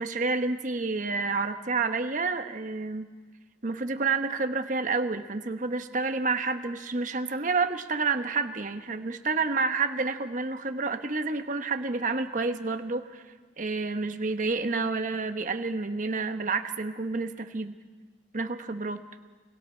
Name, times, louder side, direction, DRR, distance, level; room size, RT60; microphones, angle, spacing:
voice 1, 0.0-3.0 3.6-13.2 13.6-17.7 18.3-19.0, right 4 dB, 45° right, 8 dB, 1.1 m, -29 dB
29.5 x 21.0 x 4.5 m, 1.4 s
head